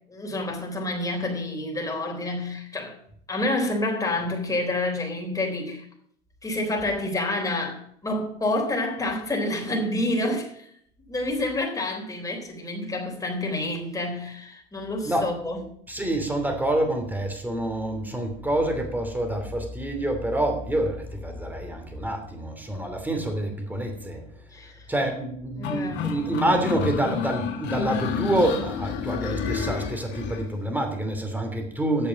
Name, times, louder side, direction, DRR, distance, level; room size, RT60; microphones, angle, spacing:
voice 1, 0.1-3.0 3.3-5.9 6.4-10.7 11.1-15.6 24.5-24.9 25.6-26.0, left 2 dB, 15° left, 3.7 m, -28 dB
voice 2, 15.9-24.5 24.9-32.1, right 1 dB, 10° right, 2.9 m, -27 dB
sound 1, 25.6-30.4, left 7 dB, 65° left, 1.9 m, -30 dB
9.1 x 6.9 x 7.3 m
supercardioid pair, 90°, 20 cm